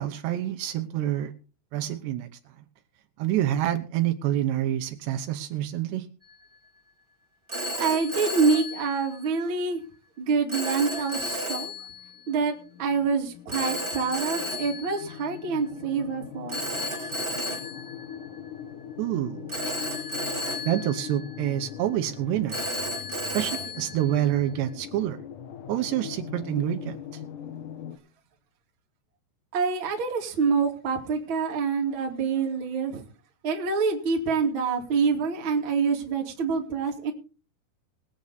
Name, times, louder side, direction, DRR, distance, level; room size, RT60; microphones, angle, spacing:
voice 1, 0.0-1.3 1.7-2.3 3.2-6.1 19.0-19.5 20.7-22.6 23.3-25.2 25.7-27.0, right 12 dB, 80° right, 7 dB, 3.1 m, -27 dB
Telephone, 6.2-6.5 7.5-9.5 10.5-12.2 13.5-15.7 16.5-18.8 19.5-21.8 22.5-24.7, equal, 10° right, 1.6 m, -34 dB
voice 2, 7.7-9.8 10.2-11.7 12.3-12.5 12.8-16.6 29.5-33.0 33.4-37.1, right 5 dB, 35° right, 0 dB, 2.3 m, -26 dB
sound 1, 11.0-28.0, left 9 dB, 75° left, 1.8 m, -41 dB
21.5 x 8.0 x 4.0 m, 0.36 s
omnidirectional pair, 5.0 m